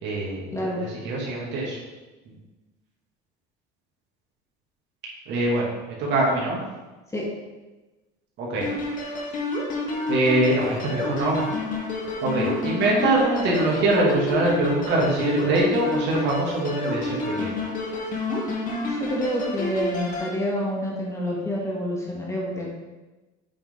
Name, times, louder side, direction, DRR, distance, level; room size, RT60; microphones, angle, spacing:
voice 1, 0.0-1.8 2.3-2.4 5.3-6.6 8.4-8.7 10.1-11.5 12.2-17.5, right 2 dB, 60° right, -3 dB, 2.6 m, -23 dB
sound 1, 8.6-20.3, left 2 dB, 40° left, 1.7 m, -29 dB
voice 2, 18.9-22.7, equal, 15° left, -3 dB, 1.8 m, -28 dB
8.2 x 5.8 x 3.9 m, 1.1 s
cardioid pair, 130°, 20 cm